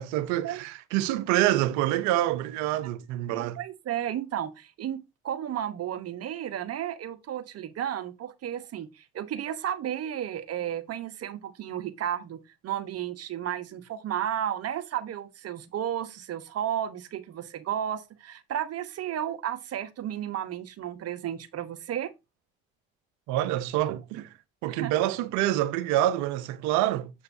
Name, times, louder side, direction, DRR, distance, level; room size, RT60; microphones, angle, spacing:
voice 1, 0.0-3.6 23.3-24.3 24.6-27.1, right 14 dB, 75° right, 0.8 m, -26 dB
voice 2, 3.3-22.1 24.7-24.9, right 10 dB, 55° right, 1.2 m, -33 dB
7.1 x 6.6 x 2.7 m
hypercardioid pair, 60°, 29 cm